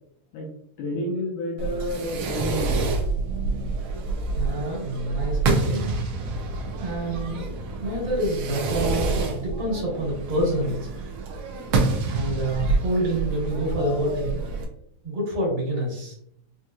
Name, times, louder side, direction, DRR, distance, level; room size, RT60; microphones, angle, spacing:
voice 1, 0.8-3.0, left 1 dB, 75° left, -4 dB, 2.3 m, -30 dB
Fireworks, 1.6-14.6, right 3 dB, 85° right, 1.3 m, -27 dB
voice 2, 4.3-5.9 6.8-10.8 12.1-14.4 15.0-16.2, right 1 dB, 45° right, -4 dB, 1.6 m, -27 dB
5.4 x 2.9 x 2.3 m, 0.70 s
omnidirectional pair, 3.6 m